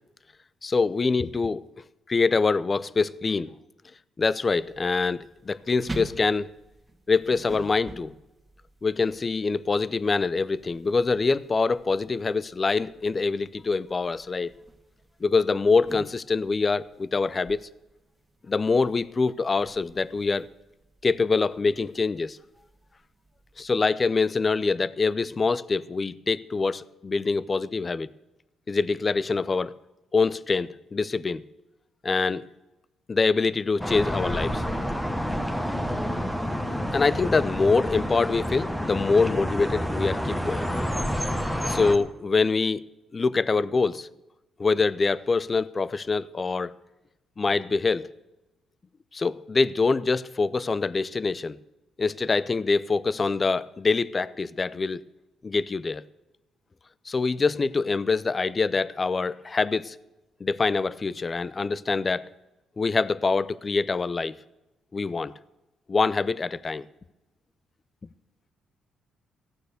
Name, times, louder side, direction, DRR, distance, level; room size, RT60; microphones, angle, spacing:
voice 1, 0.6-1.6 2.1-3.5 4.2-6.5 7.1-8.1 8.8-14.5 15.2-17.6 18.5-20.5 21.0-22.4 23.6-28.1 28.7-29.7 30.1-31.4 32.0-32.5 33.1-34.6 36.9-40.7 41.7-42.8 43.1-44.1 44.6-46.8 47.4-48.1 49.1-51.6 52.0-55.0 55.4-56.0 57.1-60.0 60.4-62.2 62.8-64.4 64.9-65.3 65.9-66.9, left 4 dB, 30° left, 0.5 m, -25 dB
sound 1, 4.6-23.7, right 1 dB, 15° right, 1.9 m, -47 dB
sound 2, 33.8-42.0, equal, 5° left, 1.2 m, -29 dB
15.0 x 9.2 x 6.6 m
cardioid pair, 110°, 0 cm